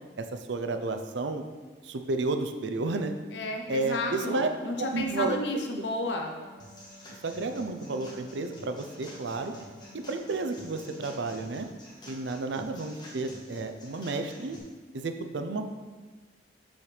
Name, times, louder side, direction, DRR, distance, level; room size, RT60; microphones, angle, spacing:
voice 1, 0.2-1.5 1.8-3.1 3.7-4.5 4.8-5.6 7.2-9.5 9.9-11.7 12.1-14.6 14.9-15.6, right 3 dB, 70° right, 7 dB, 0.5 m, -31 dB
voice 2, 3.3-6.3, left 2 dB, 65° left, 2 dB, 0.8 m, -32 dB
sound 1, 3.7-11.8, left 1 dB, 20° right, 1.2 m, -54 dB
sound 2, 6.6-14.6, left 1 dB, 20° left, 1.2 m, -49 dB
7.0 x 5.5 x 3.3 m, 1.3 s
head